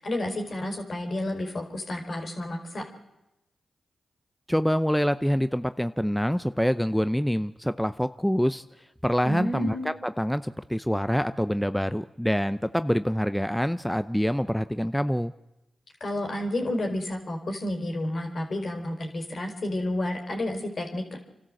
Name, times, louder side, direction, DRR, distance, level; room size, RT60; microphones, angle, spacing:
voice 1, 0.0-2.8 9.2-9.9 16.0-21.2, left 1 dB, 60° left, 3 dB, 4.6 m, -31 dB
voice 2, 4.5-8.6 9.0-15.3, equal, 5° left, 12 dB, 0.7 m, -26 dB
28.0 x 12.5 x 7.8 m, 0.95 s
supercardioid pair, 45°, 0 cm